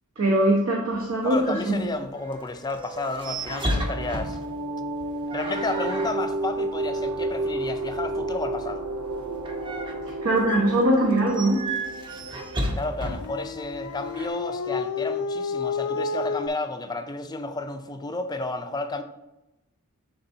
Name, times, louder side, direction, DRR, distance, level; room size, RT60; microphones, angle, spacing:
voice 1, 0.2-1.7 10.2-11.6, right 1 dB, 65° right, 1.1 m, -21 dB
sound 1, 0.9-14.3, right 1 dB, 20° right, 0.7 m, -35 dB
voice 2, 1.2-4.4 5.3-8.8 12.7-19.0, left 2 dB, 20° left, 0.4 m, -32 dB
sound 2, 3.0-13.3, right 2 dB, 90° right, 0.5 m, -32 dB
Dog, 13.0-16.5, left 5 dB, 80° left, 0.3 m, -30 dB
11.0 x 3.7 x 2.7 m
head